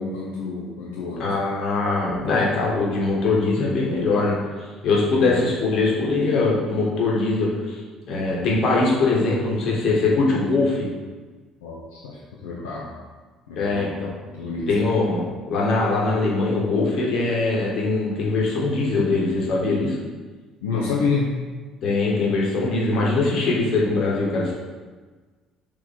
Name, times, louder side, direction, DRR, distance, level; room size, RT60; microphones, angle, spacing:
voice 1, 0.0-1.2 5.2-5.3 11.6-12.9 13.5-13.9 14.3-14.9 20.6-21.4, left 4 dB, 70° left, -6 dB, 0.9 m, -28 dB
voice 2, 1.2-4.4 4.8-7.8 8.1-10.9 13.6-14.1 14.7-20.0 21.8-24.5, left 3 dB, 50° left, -4 dB, 1.7 m, -22 dB
6.2 x 4.4 x 3.8 m, 1.4 s
figure-of-eight pair, 50°, 0 cm